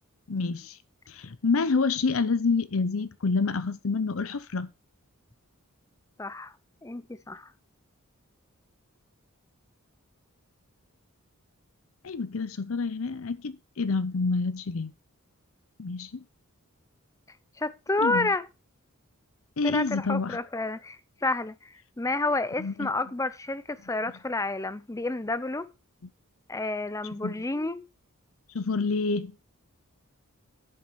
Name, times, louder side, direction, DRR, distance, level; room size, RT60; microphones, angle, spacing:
voice 1, 0.3-0.8 1.1-4.7 12.0-14.9 15.8-16.2 18.0-18.3 19.6-20.4 22.6-22.9 27.2-27.3 28.5-29.3, left 4 dB, 65° left, 0.7 m, -28 dB
voice 2, 6.2-6.5 6.8-7.5 17.6-18.4 19.6-25.7 26.5-27.8, left 2 dB, 15° left, 0.6 m, -30 dB
11.0 x 8.3 x 4.6 m
head